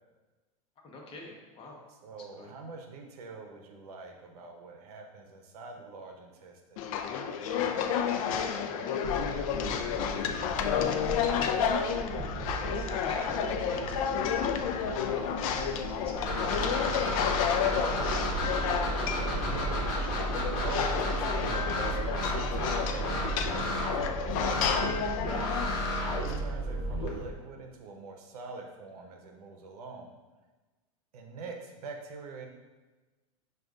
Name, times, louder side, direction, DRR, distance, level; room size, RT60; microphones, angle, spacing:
voice 1, 0.8-1.8 2.4-2.5 12.6-14.4 14.7-17.1 26.4-26.6, left 3 dB, 30° left, -1 dB, 0.9 m, -43 dB
voice 2, 2.0-9.4 9.7-10.6 19.0-19.9 20.5-25.5 26.1-30.1 31.1-32.5, right 3 dB, 80° right, 3 dB, 0.7 m, -46 dB
sound 1, 6.8-26.4, left 8 dB, 65° left, 0.4 m, -31 dB
sound 2, 9.0-27.3, right 3 dB, 30° right, 0.5 m, -40 dB
sound 3, 16.2-27.1, equal, 50° left, 1.1 m, -32 dB
6.2 x 2.4 x 2.4 m, 1.2 s
supercardioid pair, 125°, 19 cm